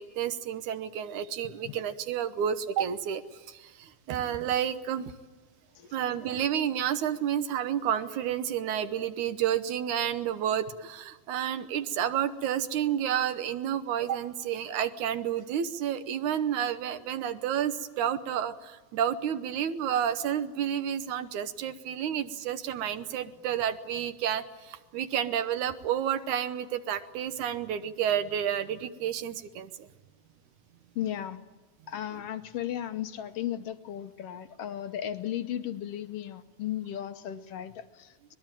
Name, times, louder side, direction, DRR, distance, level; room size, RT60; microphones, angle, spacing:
voice 1, 0.0-3.2 3.5-5.1 5.9-29.9, right 9 dB, 75° right, 10 dB, 2.3 m, -30 dB
voice 2, 30.9-31.4 31.9-38.3, left 11 dB, 70° left, 10 dB, 1.5 m, -35 dB
24.5 x 20.5 x 9.0 m, 1.3 s
omnidirectional pair, 3.6 m